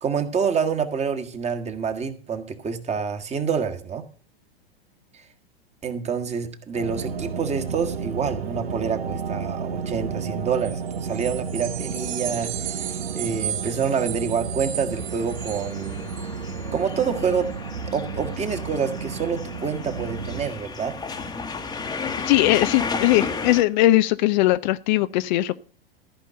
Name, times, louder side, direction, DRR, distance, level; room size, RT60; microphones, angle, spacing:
voice 1, 0.0-4.0 5.1-5.3 5.8-16.1 16.7-21.0, right 6 dB, 20° right, 1.6 m, -27 dB
sound 1, 6.7-20.5, right 5 dB, 80° right, 1.3 m, -32 dB
sound 2, 10.6-16.8, right 10 dB, 50° right, 3.2 m, -35 dB
sound 3, 14.9-23.6, left 4 dB, 15° left, 1.2 m, -33 dB
voice 2, 22.3-25.6, left 16 dB, 50° left, 0.6 m, -19 dB
14.5 x 5.2 x 7.9 m
hypercardioid pair, 100°, 30 cm